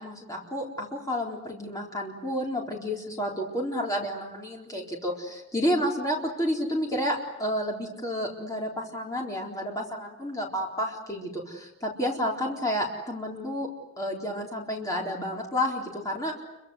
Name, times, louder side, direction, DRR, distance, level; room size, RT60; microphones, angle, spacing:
voice 1, 0.0-13.7 14.0-16.4, equal, 15° left, -1 dB, 4.1 m, -30 dB
29.5 x 23.5 x 8.0 m, 0.88 s
head